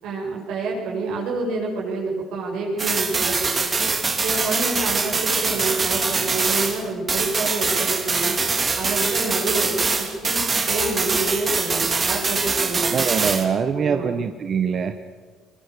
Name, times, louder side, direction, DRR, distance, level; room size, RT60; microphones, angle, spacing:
voice 1, 0.0-3.9 4.2-8.4 8.7-10.4 10.7-12.9 13.7-14.1, right 3 dB, 85° right, -2 dB, 7.6 m, -28 dB
sound 1, 2.8-6.8 7.1-13.4, right 4 dB, 30° right, 3.0 m, -23 dB
voice 2, 12.8-14.9, right 6 dB, 50° right, 8 dB, 1.1 m, -23 dB
23.5 x 23.5 x 6.9 m, 1.5 s
cardioid pair, 105°, 0 cm